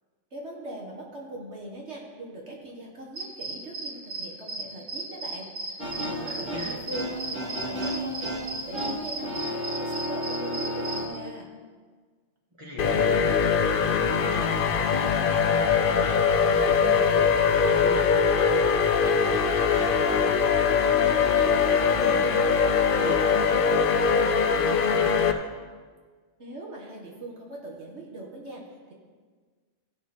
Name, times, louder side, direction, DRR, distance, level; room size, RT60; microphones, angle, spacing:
voice 1, 0.3-11.5 26.4-28.9, right 1 dB, 65° right, -2 dB, 1.8 m, -41 dB
sound 1, 3.2-11.2, right 2 dB, 90° right, 1.6 m, -36 dB
sound 2, 5.8-11.1, equal, 45° right, 2.7 m, -33 dB
voice 2, 6.3-6.7 12.6-13.3 13.6-18.6 19.0-22.6 22.9-25.5, equal, 25° right, -3 dB, 1.9 m, -38 dB
sound 3, 12.8-25.3, left 6 dB, 55° left, 0.7 m, -22 dB
16.0 x 5.9 x 4.4 m, 1.5 s
omnidirectional pair, 1.2 m